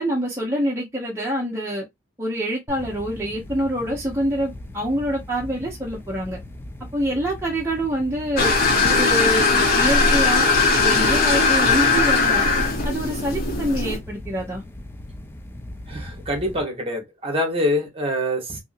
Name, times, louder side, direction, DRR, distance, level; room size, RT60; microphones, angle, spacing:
voice 1, 0.0-1.8 2.2-6.4 6.9-8.5 8.9-12.5 12.8-14.6, right 1 dB, 15° right, 0.7 m, -26 dB
sound 1, 2.7-16.6, left 1 dB, 10° left, 0.4 m, -39 dB
sound 2, 8.4-14.0, left 4 dB, 50° left, 0.8 m, -19 dB
voice 2, 15.9-18.6, left 1 dB, 30° right, 1.0 m, -25 dB
2.8 x 2.6 x 2.5 m
head